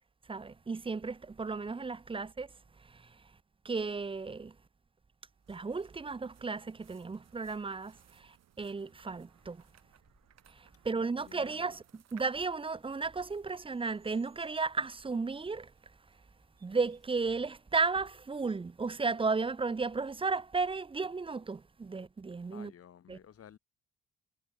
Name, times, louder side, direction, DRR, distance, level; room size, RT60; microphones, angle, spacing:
voice 1, 0.3-2.5 2.8-3.2 3.6-4.6 5.5-9.6 10.5-15.7 16.6-22.7 23.1-23.2, right 4 dB, 20° right, 0.6 m, -34 dB
sound 1, 5.3-17.0, right 9 dB, 60° right, 2.4 m, -67 dB
sound 2, 5.4-12.0, right 12 dB, 75° right, 4.7 m, -69 dB
sound 3, 9.1-20.8, equal, ahead, 7.2 m, -73 dB
voice 2, 10.9-11.8 22.5-23.6, left 9 dB, 50° left, 1.3 m, -55 dB
cardioid pair, 90°, 30 cm